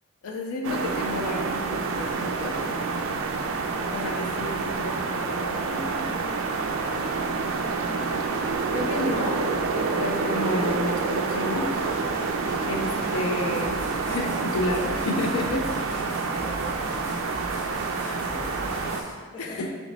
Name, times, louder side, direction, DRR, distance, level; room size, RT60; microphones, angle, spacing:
voice 1, 0.2-2.6 3.9-6.1 8.7-9.5 9.8-11.8 12.7-15.7 18.0-18.1 19.4-19.7, left 2 dB, 80° left, 3 dB, 0.4 m, -31 dB
sound 1, 0.6-19.0, right 4 dB, 65° right, 0.3 m, -28 dB
voice 2, 6.6-7.1 16.4-16.7 17.8-17.9 18.2-18.9 19.3-19.7, left 1 dB, 20° left, -4 dB, 0.5 m, -43 dB
sound 2, 11.7-19.1, equal, 55° left, 1.2 m, -41 dB
3.1 x 2.9 x 4.0 m, 1.5 s
head